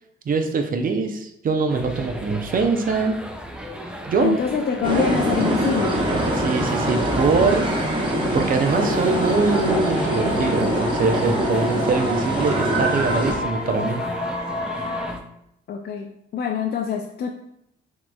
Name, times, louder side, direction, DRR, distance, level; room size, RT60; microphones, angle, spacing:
voice 1, 0.3-3.2 4.1-4.4 6.3-7.7 8.3-14.0, right 4 dB, 45° right, 6 dB, 0.6 m, -23 dB
sound 1, 1.7-15.2, equal, 5° right, 0.5 m, -35 dB
voice 2, 4.2-6.0 15.7-17.3, left 7 dB, 55° left, 3 dB, 0.4 m, -25 dB
sound 2, 4.8-13.3, right 1 dB, 25° right, 1.0 m, -24 dB
sound 3, 8.7-15.1, left 1 dB, 35° left, 1.6 m, -28 dB
6.1 x 3.0 x 2.3 m, 0.78 s
cardioid pair, 90°, 20 cm